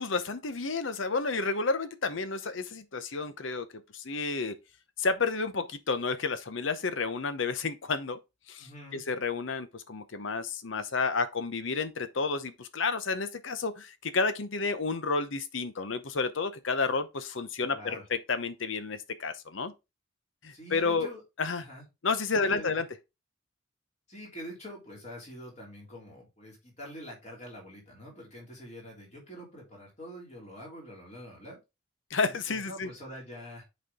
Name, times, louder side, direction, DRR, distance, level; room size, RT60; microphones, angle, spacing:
voice 1, 0.0-3.7 3.9-4.5 5.0-8.2 8.5-19.7 20.4-21.1 21.4-21.6 22.0-22.8 32.1-32.9, left 4 dB, 75° left, 0.8 m, -31 dB
voice 2, 8.6-9.0 17.6-18.1 20.5-21.2 21.6-21.8 22.3-22.8 24.1-31.6 32.2-33.6, equal, 35° left, 3.3 m, -45 dB
8.1 x 4.4 x 3.6 m
head